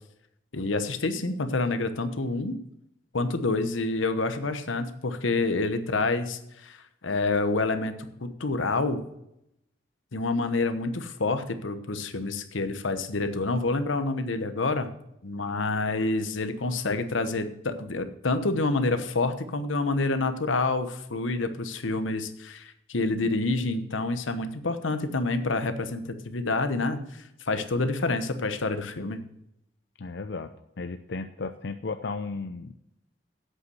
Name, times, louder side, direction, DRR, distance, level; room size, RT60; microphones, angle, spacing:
voice 1, 0.5-2.6 3.1-7.9 8.2-9.0 10.1-14.9 15.2-29.2, left 3 dB, 85° left, 10 dB, 1.0 m, -28 dB
voice 2, 30.0-30.5 30.8-32.7, left 4 dB, 60° left, 8 dB, 0.5 m, -34 dB
8.3 x 8.1 x 6.3 m, 0.81 s
head